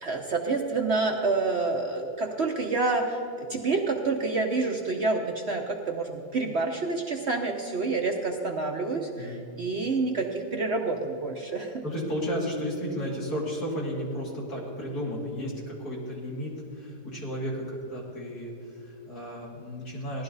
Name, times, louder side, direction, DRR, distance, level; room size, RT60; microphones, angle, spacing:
voice 1, 0.0-11.8, right 3 dB, 50° right, 2 dB, 0.9 m, -28 dB
voice 2, 11.8-18.5 18.8-20.2, equal, 65° left, -4 dB, 3.5 m, -33 dB
17.0 x 12.0 x 4.0 m, 2.6 s
omnidirectional pair, 1.8 m